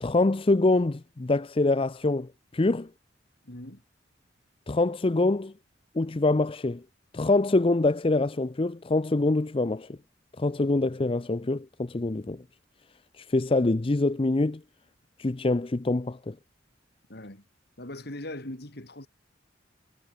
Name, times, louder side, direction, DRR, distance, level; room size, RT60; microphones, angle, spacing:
voice 1, 0.0-2.9 4.7-5.5 5.9-6.8 7.1-10.0 10.4-12.4 13.1-14.6 15.2-16.4, left 2 dB, 30° left, 0.5 m, -25 dB
voice 2, 3.4-3.8 17.1-17.5 17.8-19.1, left 1 dB, 55° left, 3.5 m, -40 dB
head